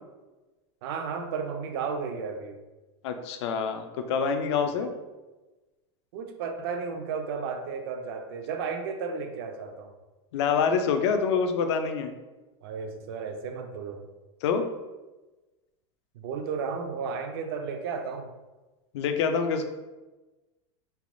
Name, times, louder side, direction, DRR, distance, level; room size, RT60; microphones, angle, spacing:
voice 1, 0.8-2.6 6.1-9.9 12.6-14.1 16.1-18.3, right 5 dB, 50° right, 7 dB, 0.4 m, -33 dB
voice 2, 3.0-4.9 10.3-12.1 14.4-14.7 18.9-19.7, left 6 dB, 60° left, 6 dB, 0.4 m, -26 dB
3.3 x 3.0 x 2.5 m, 1.2 s
supercardioid pair, 175°, 16 cm